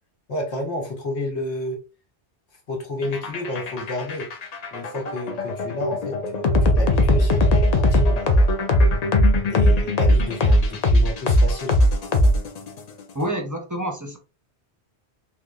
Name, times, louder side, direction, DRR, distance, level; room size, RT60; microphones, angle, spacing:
voice 1, 0.3-1.8 2.7-4.3 4.7-8.5 9.5-11.8, left 1 dB, 80° left, -1 dB, 1.5 m, -30 dB
sound 1, 3.0-12.8, left 1 dB, 50° left, 0.5 m, -19 dB
voice 2, 13.1-14.2, right 1 dB, 25° right, 3 dB, 0.5 m, -28 dB
3.5 x 2.8 x 2.4 m, 0.30 s
omnidirectional pair, 1.1 m